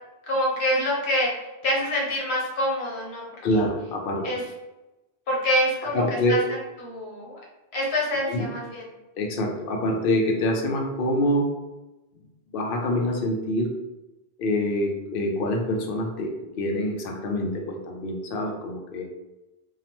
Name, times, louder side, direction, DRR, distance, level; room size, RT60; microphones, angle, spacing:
voice 1, 0.3-1.3 1.6-3.3 4.2-4.4 5.3-6.0 6.3-7.4 7.7-8.8, equal, 85° left, -3 dB, 1.1 m, -26 dB
voice 2, 3.4-4.4 5.9-6.4 8.3-8.5 9.2-11.5 12.5-13.7 14.4-19.1, left 1 dB, 65° left, 2 dB, 0.7 m, -25 dB
2.8 x 2.0 x 2.9 m, 1.0 s
omnidirectional pair, 1.0 m